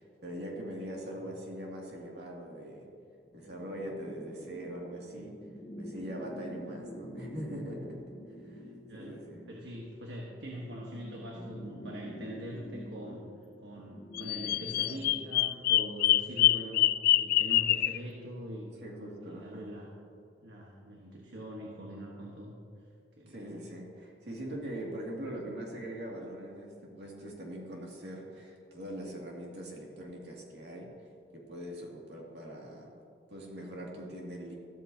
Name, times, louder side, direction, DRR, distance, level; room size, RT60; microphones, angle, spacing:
voice 1, 0.0-2.9 3.3-5.3 5.8-7.8 8.4-8.6 8.9-9.4 18.8-19.7 23.3-30.9 31.3-32.9 33.3-34.5, right 1 dB, 70° right, -2 dB, 2.3 m, -42 dB
sound 1, 3.4-15.8, equal, 35° left, 1.4 m, -47 dB
voice 2, 9.5-13.2 13.6-18.7 19.2-19.9 20.4-22.5 23.2-23.6, equal, 85° right, -2 dB, 1.3 m, -43 dB
Bird vocalization bird call bird song, 14.1-18.0, left 14 dB, 55° left, 0.3 m, -25 dB
14.0 x 13.0 x 2.8 m, 2.4 s
head